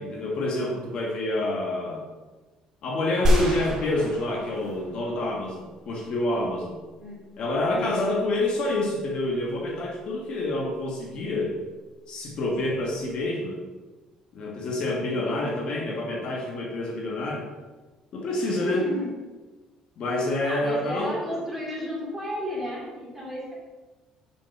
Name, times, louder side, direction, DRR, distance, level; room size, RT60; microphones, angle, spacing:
voice 1, 0.0-2.1 2.8-6.8 7.4-11.6 12.1-13.6 14.3-17.5 18.1-18.8 20.0-21.2, left 1 dB, 45° left, -1 dB, 1.4 m, -27 dB
sound 1, 3.3-5.6, equal, 30° right, 1.9 m, -26 dB
voice 2, 7.7-8.1 14.9-15.4 18.3-19.1 20.4-23.5, equal, 5° right, -6 dB, 2.6 m, -33 dB
6.5 x 5.1 x 5.9 m, 1.2 s
cardioid pair, 155°, 2 cm